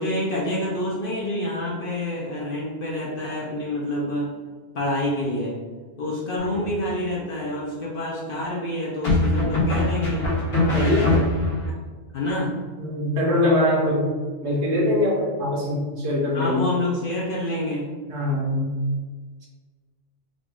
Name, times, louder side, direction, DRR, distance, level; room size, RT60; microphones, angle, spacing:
voice 1, 0.0-4.3 4.7-5.6 6.0-10.3 10.7-11.3 11.6-11.7 12.1-12.6 16.3-17.9, left 1 dB, 55° left, -4 dB, 0.7 m, -27 dB
sound 1, 6.4-7.0 9.0-11.7, left 2 dB, 75° left, 1.6 m, -22 dB
voice 2, 10.7-11.1 12.8-14.1 14.4-16.6 18.1-18.8, left 1 dB, 60° right, -3 dB, 1.2 m, -22 dB
3.7 x 2.3 x 3.5 m, 1.4 s
omnidirectional pair, 1.4 m